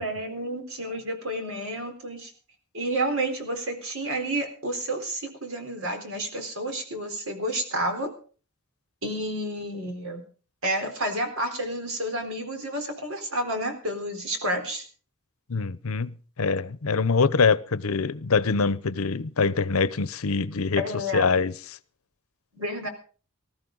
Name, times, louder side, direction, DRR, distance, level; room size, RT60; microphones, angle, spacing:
voice 1, 0.0-2.3 2.7-8.1 9.0-10.2 10.6-14.8 20.8-21.3 22.5-22.9, right 1 dB, 75° right, 4.1 m, -30 dB
voice 2, 15.5-20.8 21.1-21.5, left 4 dB, 85° left, 0.7 m, -24 dB
19.5 x 14.0 x 3.9 m
head